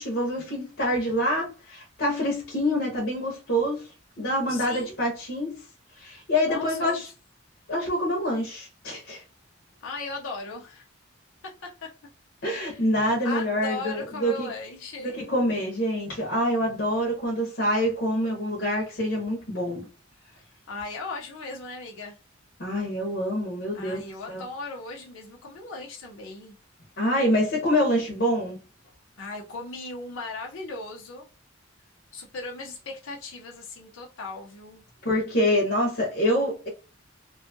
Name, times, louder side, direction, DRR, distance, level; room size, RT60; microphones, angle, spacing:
voice 1, 0.0-3.8 4.2-5.6 6.0-7.1 7.7-9.2 12.4-14.5 15.0-19.9 22.6-24.4 27.0-28.6 35.0-36.7, equal, 60° left, 0.8 m, -26 dB
voice 2, 4.5-5.0 6.5-7.1 9.8-10.9 11.6-11.9 12.5-12.8 13.2-15.2 20.7-22.2 23.7-26.6 29.2-31.3 32.1-34.8, left 3 dB, 85° left, 0.6 m, -37 dB
2.6 x 2.3 x 2.6 m
head